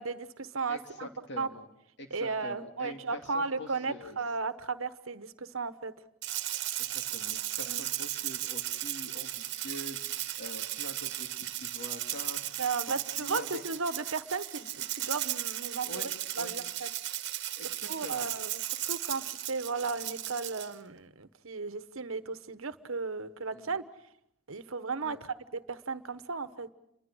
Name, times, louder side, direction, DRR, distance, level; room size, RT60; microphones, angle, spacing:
voice 1, 0.0-1.1 1.4-1.5 2.1-5.9 7.6-7.8 12.6-16.9 17.9-23.8 24.5-26.7, right 4 dB, 75° right, 12 dB, 1.2 m, -35 dB
voice 2, 0.7-1.7 2.0-4.2 6.9-10.0 10.4-12.4 12.9-13.6 15.8-16.1 16.4-16.5 17.6-18.3 23.5-23.7 25.0-25.2, left 1 dB, 55° left, 5 dB, 2.6 m, -45 dB
Rattle (instrument), 6.2-20.7, right 13 dB, 55° right, 1.3 m, -36 dB
29.0 x 23.0 x 6.3 m, 0.77 s
head